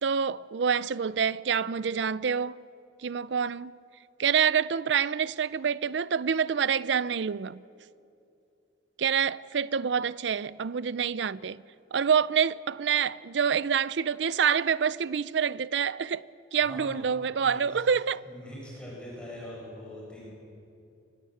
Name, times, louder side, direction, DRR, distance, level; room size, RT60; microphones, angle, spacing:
voice 1, 0.0-2.6 3.0-3.7 4.2-7.6 9.0-11.6 11.9-18.2, right 7 dB, 65° right, 0.5 m, -27 dB
voice 2, 16.6-17.0 17.4-17.9 18.2-20.3, left 1 dB, 5° left, 6.8 m, -43 dB
24.5 x 19.5 x 7.8 m
head